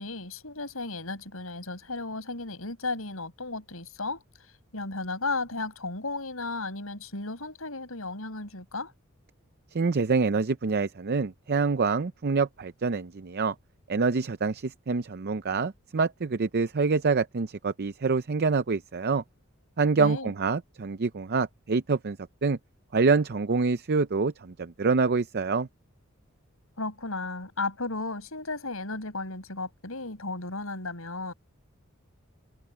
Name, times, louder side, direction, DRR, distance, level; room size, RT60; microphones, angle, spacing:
voice 1, 0.0-4.2 4.7-8.9 20.0-20.3 26.8-31.3, left 3 dB, 85° left, 6.2 m, -34 dB
voice 2, 9.7-13.5 13.9-19.2 19.8-22.6 22.9-25.7, right 4 dB, 50° right, 0.6 m, -26 dB
head